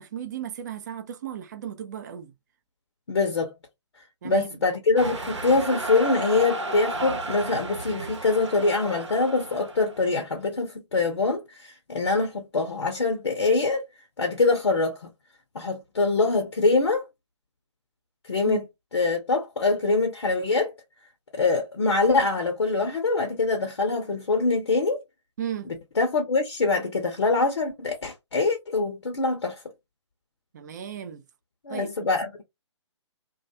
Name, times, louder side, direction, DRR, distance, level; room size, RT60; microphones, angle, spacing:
voice 1, 0.0-2.3 4.2-4.5 18.4-18.7 25.4-25.7 30.5-31.2 31.7-31.9, right 10 dB, 35° right, 0.4 m, -35 dB
voice 2, 3.1-3.5 4.2-13.8 14.2-15.1 15.5-17.0 18.3-18.6 18.9-20.7 21.3-25.0 25.7-29.6 31.6-32.4, left 3 dB, 60° left, 0.6 m, -24 dB
sound 1, 5.0-10.1, right 2 dB, 70° right, 0.9 m, -33 dB
2.3 x 2.2 x 2.7 m
figure-of-eight pair, 130°, 16 cm